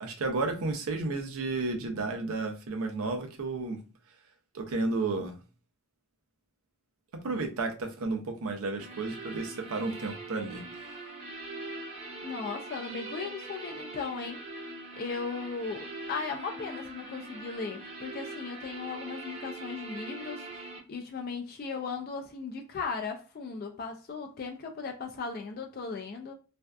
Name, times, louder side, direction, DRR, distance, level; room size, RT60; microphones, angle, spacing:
voice 1, 0.0-3.8 4.5-5.4 7.2-10.6, right 3 dB, 80° right, 0.5 m, -32 dB
sound 1, 8.8-20.8, right 2 dB, 30° right, 0.6 m, -42 dB
voice 2, 12.2-14.4 15.0-26.3, left 5 dB, 45° left, 0.3 m, -37 dB
2.5 x 2.3 x 2.2 m
head